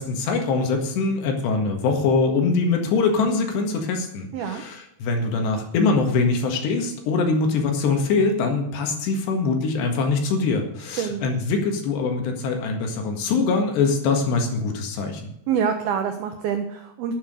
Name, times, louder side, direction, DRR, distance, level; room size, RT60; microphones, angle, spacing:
voice 1, 0.0-15.3, left 4 dB, 65° left, 3 dB, 3.6 m, -23 dB
voice 2, 4.3-4.6 11.0-11.3 15.5-17.2, right 7 dB, 90° right, 6 dB, 2.1 m, -26 dB
11.5 x 8.9 x 6.5 m, 0.81 s
omnidirectional pair, 5.8 m